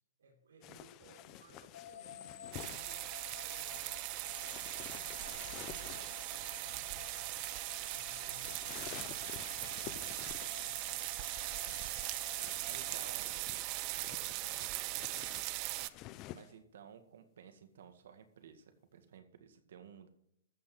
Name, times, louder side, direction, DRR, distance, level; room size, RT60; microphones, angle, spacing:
voice 1, 0.2-7.5 7.8-11.2 12.6-15.8, right 2 dB, 85° right, -2 dB, 3.7 m, -62 dB
sound 1, 0.6-2.8 4.4-6.3 8.4-10.7 12.3-16.5, left 15 dB, 25° left, 0.5 m, -51 dB
sound 2, 1.7-13.9, left 9 dB, 80° left, 1.9 m, -52 dB
sound 3, 2.5-15.9, right 20 dB, 30° right, 0.4 m, -40 dB
voice 2, 11.7-12.1 12.6-13.3 16.3-20.1, right 8 dB, 65° right, 7 dB, 1.9 m, -55 dB
14.0 x 5.8 x 6.0 m, 0.78 s
hypercardioid pair, 160°, 0 cm